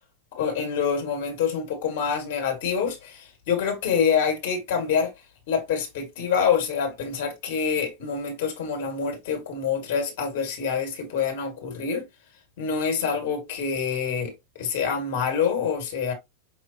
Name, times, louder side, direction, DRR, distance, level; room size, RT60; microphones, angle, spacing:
voice 1, 0.3-5.1 5.5-12.1 12.6-16.1, left 6 dB, 50° left, 1.8 m, -26 dB
5.8 x 2.9 x 2.8 m
figure-of-eight pair, 90°, 0 cm